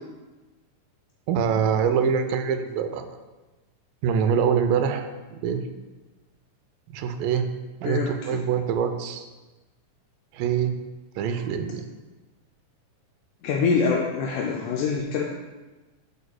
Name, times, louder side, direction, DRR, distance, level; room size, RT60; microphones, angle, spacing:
voice 1, 1.3-3.1 4.0-5.6 6.9-7.5 7.8-9.3 10.3-10.8 11.2-11.8, right 7 dB, 90° right, 8 dB, 2.3 m, -24 dB
voice 2, 7.8-8.5 13.4-15.2, left 5 dB, 80° left, -1 dB, 1.9 m, -25 dB
11.0 x 5.3 x 2.2 m, 1.2 s
omnidirectional pair, 3.9 m